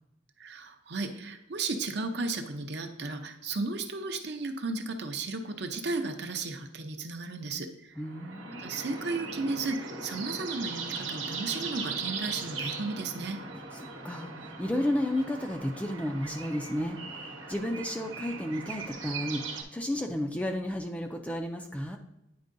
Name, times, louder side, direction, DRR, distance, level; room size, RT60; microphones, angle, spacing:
voice 1, 0.4-8.0 8.6-13.4, right 3 dB, 55° right, 6 dB, 0.6 m, -34 dB
voice 2, 8.0-8.7 13.7-22.0, left 1 dB, 5° left, 3 dB, 0.4 m, -32 dB
sound 1, 8.0-19.6, right 4 dB, 70° right, 1.0 m, -39 dB
9.4 x 4.5 x 2.6 m, 0.86 s
head